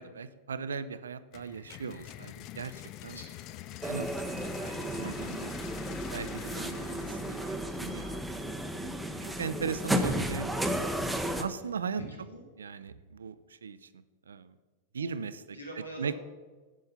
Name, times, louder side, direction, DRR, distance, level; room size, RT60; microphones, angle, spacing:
voice 1, 0.0-3.2 3.8-5.5 6.1-8.2 9.2-10.6 11.4-12.0 12.6-13.9 14.3-14.5 14.9-15.3 16.0-16.2, right 6 dB, 70° right, 15 dB, 0.4 m, -38 dB
sound 1, 1.3-9.1, left 14 dB, 40° left, 0.3 m, -47 dB
voice 2, 3.0-3.5 9.8-10.5 11.9-12.4 15.0-15.1 15.5-16.2, right 1 dB, 85° left, 0 dB, 1.7 m, -45 dB
sound 2, 3.8-11.4, equal, 5° right, 0.6 m, -33 dB
7.5 x 5.5 x 5.5 m, 1.3 s
figure-of-eight pair, 90°, 0 cm